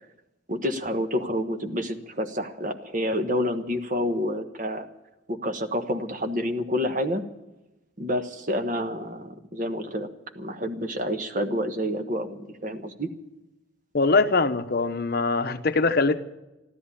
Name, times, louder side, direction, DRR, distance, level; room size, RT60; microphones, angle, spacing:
voice 1, 0.5-4.9 5.3-7.2 8.0-10.1 10.3-13.1, equal, 40° right, 7 dB, 1.3 m, -28 dB
voice 2, 13.9-16.2, left 3 dB, 50° left, 10 dB, 0.8 m, -22 dB
13.5 x 13.0 x 8.4 m, 1.0 s
head